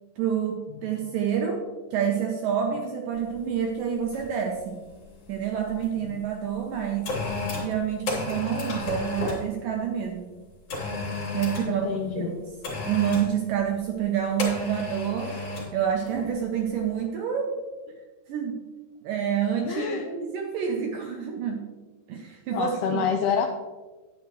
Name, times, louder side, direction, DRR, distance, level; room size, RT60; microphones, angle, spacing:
voice 1, 0.2-4.8 5.3-7.1 7.6-10.3 11.3-11.9 12.2-12.4 12.9-15.3 15.7-17.5 18.3-18.6 19.0-21.7 22.1-23.0, right 8 dB, 80° right, 2 dB, 2.0 m, -28 dB
sound 1, 3.3-3.5 4.1-4.4 4.7-5.9 6.5-9.5 10.7-11.8 12.6-13.3 14.4-15.7 16.1-16.3, left 2 dB, 50° left, 3.5 m, -32 dB
voice 2, 8.2-8.6 11.7-12.3 19.6-20.1 22.5-23.5, left 7 dB, 80° left, 4 dB, 2.3 m, -28 dB
10.5 x 9.7 x 3.0 m, 1.3 s
omnidirectional pair, 4.9 m